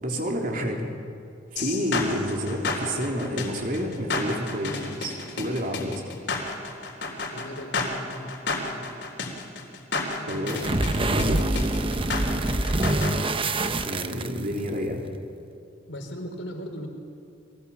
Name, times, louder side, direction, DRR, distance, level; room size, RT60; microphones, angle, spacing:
voice 1, 0.0-0.9 1.5-6.1 10.3-10.6 11.1-11.4 13.8-15.0, equal, 45° right, 1 dB, 3.7 m, -29 dB
sound 1, 1.6-13.1, left 3 dB, 65° left, 3.9 m, -31 dB
voice 2, 7.3-8.3 8.6-8.9 10.2-10.4 15.9-16.9, equal, 85° left, 4 dB, 4.3 m, -38 dB
sound 2, 10.5-14.7, right 2 dB, 30° right, 1.0 m, -25 dB
30.0 x 23.0 x 7.4 m, 2.5 s
head